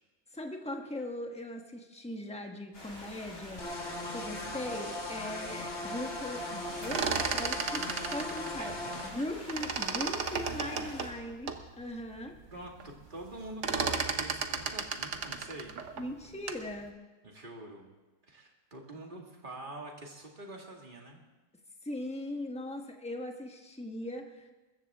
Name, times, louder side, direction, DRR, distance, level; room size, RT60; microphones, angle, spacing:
voice 1, 0.3-8.7 9.0-12.3 16.0-17.0 21.8-24.5, left 1 dB, 5° left, 3 dB, 1.3 m, -40 dB
sound 1, 2.7-11.1, left 1 dB, 65° left, 4.1 m, -47 dB
sound 2, 3.6-9.1, left 1 dB, 45° left, 2.1 m, -39 dB
sound 3, 6.7-9.2 9.5-11.6 12.1-12.2 12.5-12.9 13.2-16.7, right 5 dB, 55° right, 1.2 m, -34 dB
voice 2, 8.6-8.9 10.4-10.9 12.5-15.7 17.2-17.9 18.2-21.2, right 2 dB, 35° right, 0 dB, 2.3 m, -45 dB
22.0 x 14.0 x 3.6 m, 1.2 s
omnidirectional pair, 1.6 m